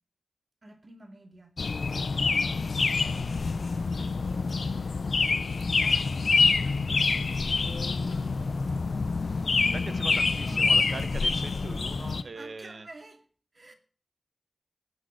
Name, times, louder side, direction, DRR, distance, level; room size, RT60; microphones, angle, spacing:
voice 1, 0.6-1.6 2.9-5.1 5.6-10.9 12.2-13.2 13.5-13.7, right 1 dB, 50° right, 2.2 m, -49 dB
sound 1, 1.6-12.2, left 4 dB, 85° left, 0.5 m, -26 dB
voice 2, 9.7-12.9, right 4 dB, 80° right, 0.9 m, -41 dB
17.5 x 6.4 x 6.4 m
wide cardioid pair, 70°, 0 cm